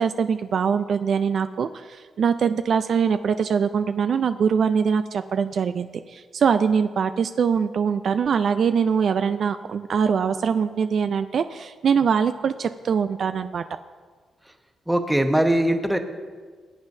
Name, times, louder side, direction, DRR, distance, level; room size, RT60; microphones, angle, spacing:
voice 1, 0.0-13.6, right 6 dB, 65° right, 10 dB, 0.3 m, -23 dB
voice 2, 14.9-16.0, right 1 dB, 5° right, 6 dB, 1.0 m, -20 dB
18.5 x 8.0 x 2.7 m, 1.5 s
supercardioid pair, 55°, 0 cm